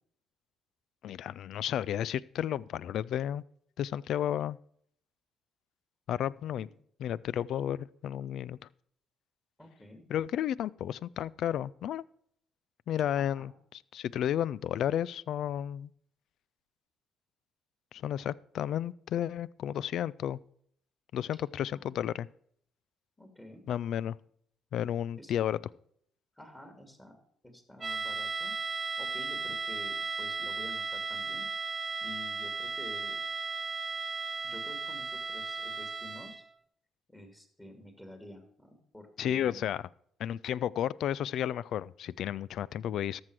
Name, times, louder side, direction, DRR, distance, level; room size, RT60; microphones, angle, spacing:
voice 1, 1.0-3.4 3.8-4.6 6.1-6.7 7.0-8.6 10.1-12.0 12.9-15.9 17.9-20.4 21.1-22.3 23.7-24.2 24.7-25.6 39.2-39.8 40.2-43.2, left 10 dB, 70° left, 22 dB, 0.3 m, -32 dB
voice 2, 6.3-6.7 9.6-10.0 13.1-13.5 21.7-22.2 23.2-23.6 25.2-25.6 26.4-27.2 27.4-28.5 29.0-31.5 32.0-33.2 34.4-36.4 37.1-39.8, left 1 dB, 15° left, 6 dB, 2.4 m, -50 dB
sound 1, 27.8-36.5, right 4 dB, 30° right, 0.6 m, -35 dB
13.5 x 6.1 x 4.8 m, 0.66 s
supercardioid pair, 70°, 0 cm